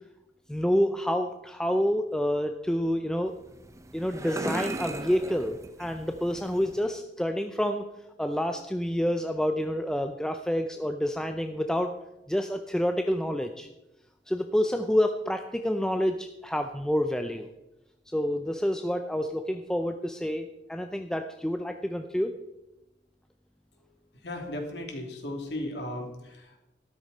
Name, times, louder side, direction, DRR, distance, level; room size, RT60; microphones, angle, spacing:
voice 1, 0.5-3.3 3.9-7.8 8.2-11.9 12.3-13.7 14.3-17.5 18.1-22.3, equal, 5° left, 6 dB, 0.5 m, -28 dB
sound 1, 3.3-6.9, right 2 dB, 20° right, 0.9 m, -37 dB
voice 2, 24.2-26.6, left 1 dB, 70° left, 2 dB, 3.0 m, -36 dB
13.0 x 12.5 x 4.2 m, 0.96 s
head